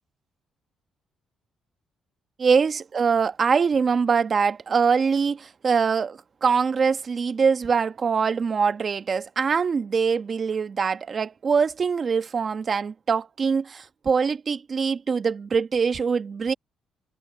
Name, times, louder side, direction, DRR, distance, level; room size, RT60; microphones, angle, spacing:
voice 1, 2.4-16.5, right 5 dB, 45° right, 1.3 m, -23 dB
cardioid pair, 90°, 0 cm